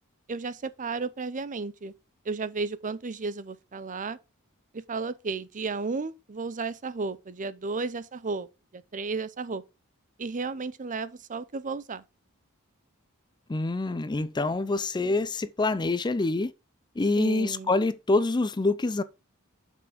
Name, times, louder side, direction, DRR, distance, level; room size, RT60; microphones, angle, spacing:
voice 1, 0.3-1.9 2.2-4.2 4.7-8.5 8.7-9.6 10.2-12.0 17.2-17.7, right 4 dB, 35° right, 0.6 m, -33 dB
voice 2, 13.5-16.5 17.0-19.0, left 2 dB, 20° left, 0.4 m, -26 dB
7.1 x 5.9 x 5.0 m
head